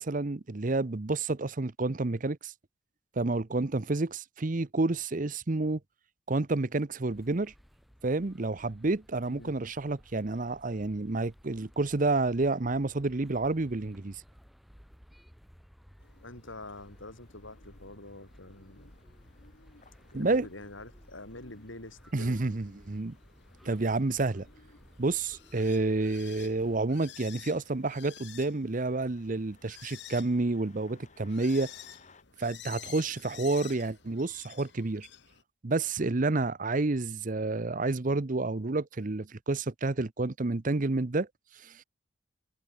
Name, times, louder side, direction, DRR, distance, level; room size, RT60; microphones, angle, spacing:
voice 1, 0.0-2.5 3.2-5.8 6.3-7.5 8.0-14.2 20.1-20.5 22.1-23.2 23.6-24.5 25.0-31.7 32.4-35.1 35.6-41.3 41.6-41.8, right 2 dB, 40° right, 0.8 m, -29 dB
sound 1, 7.1-26.9, equal, ahead, 2.3 m, -57 dB
sound 2, 16.0-35.4, left 10 dB, 60° left, 1.8 m, -52 dB
voice 2, 16.2-18.9 20.1-22.6, left 2 dB, 75° left, 7.7 m, -46 dB
sound 3, 16.6-32.2, left 4 dB, 35° left, 6.2 m, -65 dB
head